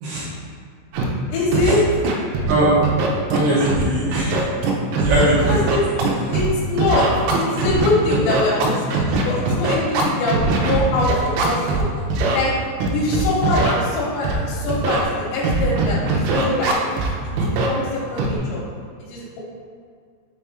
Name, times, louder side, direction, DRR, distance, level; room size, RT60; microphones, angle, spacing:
Scratching (performance technique), 0.9-1.0 1.5-1.7 2.0-2.5 2.8-3.8 4.1-6.5 6.8-11.8 12.1-12.4 12.8-13.7 14.2-14.4 14.7-15.0 15.4-17.1 17.4-17.7 18.2-18.4, right 3 dB, 90° right, 3.4 m, -20 dB
voice 1, 1.3-1.8 5.5-5.8 6.3-7.1 7.3-11.9 12.3-12.5 12.8-16.9 17.5-18.6 19.1-19.4, left 2 dB, 75° left, -6 dB, 3.0 m, -23 dB
voice 2, 3.3-4.4 5.0-5.6, right 1 dB, 75° right, -8 dB, 2.5 m, -20 dB
7.3 x 3.6 x 4.3 m, 2.1 s
omnidirectional pair, 5.7 m